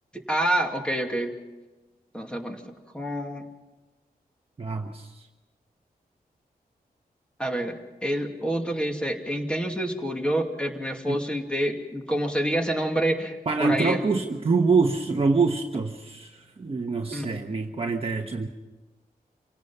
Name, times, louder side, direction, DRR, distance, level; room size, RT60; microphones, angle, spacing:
voice 1, 0.1-1.3 2.1-3.4 7.4-14.0 17.1-17.4, right 1 dB, 5° left, 3 dB, 2.5 m, -28 dB
voice 2, 4.6-5.1 11.1-11.2 13.5-18.5, right 4 dB, 35° right, 2 dB, 1.3 m, -25 dB
27.0 x 17.5 x 5.7 m, 1.2 s
wide cardioid pair, 105°, 16 cm